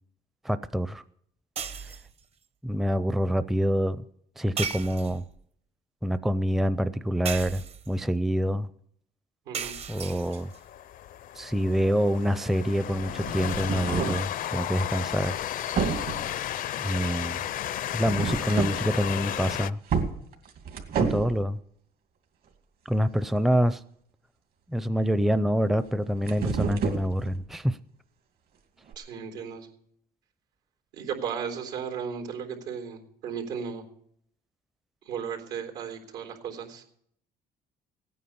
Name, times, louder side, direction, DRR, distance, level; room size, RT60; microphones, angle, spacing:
voice 1, 0.4-1.0 2.6-4.0 4.4-5.2 6.0-8.7 9.9-10.5 11.4-15.4 16.8-17.4 17.9-19.8 21.0-21.6 22.9-23.8 24.7-27.8, equal, ahead, 0.5 m, -26 dB
sound 1, 1.6-2.2 4.6-5.4 7.2-8.0 9.5-10.6, right 6 dB, 40° right, 0.8 m, -35 dB
voice 2, 9.5-9.8 29.0-29.7 30.9-33.8 35.1-36.8, right 7 dB, 90° right, 3.7 m, -35 dB
Train, 10.0-19.7, left 12 dB, 55° left, 0.5 m, -34 dB
sound 2, 13.0-14.3 15.2-15.4 15.8-16.4 18.0-18.9 19.3-19.4 19.9-21.4 25.9-27.4 28.9-29.0, right 6 dB, 65° right, 2.5 m, -30 dB
17.0 x 9.4 x 7.0 m
cardioid pair, 110°, 17 cm